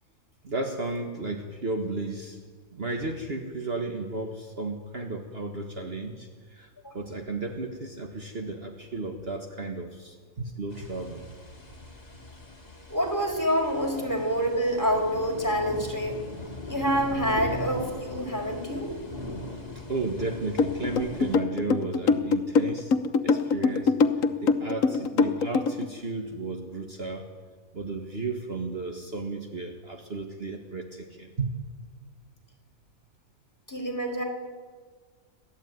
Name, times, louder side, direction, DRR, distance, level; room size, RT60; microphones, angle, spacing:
voice 1, 0.4-2.4 2.7-11.3 19.8-22.9 23.2-27.3 27.7-31.5, right 3 dB, 45° right, 3 dB, 1.8 m, -34 dB
sound 1, 10.7-21.4, left 2 dB, 30° left, 3.2 m, -39 dB
voice 2, 12.9-16.2 16.7-18.9 33.7-34.2, equal, 15° left, 0 dB, 4.8 m, -27 dB
sound 2, 20.6-25.8, left 4 dB, 70° left, 1.4 m, -23 dB
29.5 x 12.5 x 9.5 m, 1.5 s
omnidirectional pair, 1.4 m